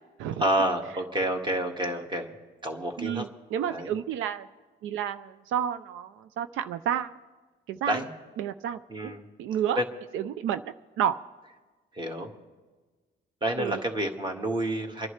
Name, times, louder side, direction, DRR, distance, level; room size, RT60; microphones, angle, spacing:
voice 1, 0.4-2.3 2.6-3.3 3.7-3.9 7.9-8.1 8.9-9.2 9.8-9.9 11.9-12.3 13.4-15.1, right 1 dB, 25° right, 2 dB, 1.8 m, -29 dB
voice 2, 3.0-4.5 4.8-7.2 7.7-8.0 8.4-9.1 9.4-9.8 10.1-11.2 13.6-13.8, right 9 dB, 85° right, 11 dB, 0.5 m, -30 dB
29.5 x 11.0 x 3.3 m, 1.3 s
cardioid pair, 90°, 20 cm